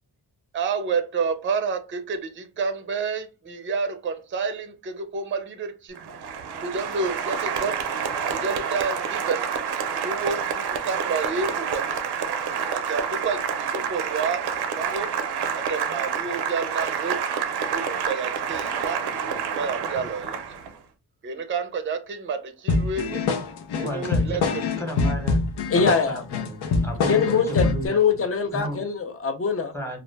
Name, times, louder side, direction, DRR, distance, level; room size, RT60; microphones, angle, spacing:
voice 1, 0.5-6.0 6.6-7.8 8.3-9.5 9.9-12.0 12.7-15.1 15.5-17.2 17.7-19.0 19.5-20.6 21.2-23.3 23.8-24.6, right 5 dB, 30° right, 0.4 m, -29 dB
Applause, 6.0-20.8, right 7 dB, 90° right, 0.5 m, -28 dB
sound 1, 22.7-27.9, left 4 dB, 90° left, 0.6 m, -25 dB
voice 2, 23.7-24.4 24.8-25.4 25.8-28.0 28.5-28.8 29.7-30.0, equal, 5° left, 0.9 m, -33 dB
voice 3, 25.7-26.2 27.1-29.7, left 5 dB, 35° left, 0.5 m, -23 dB
2.4 x 2.0 x 3.2 m
wide cardioid pair, 95°, 38 cm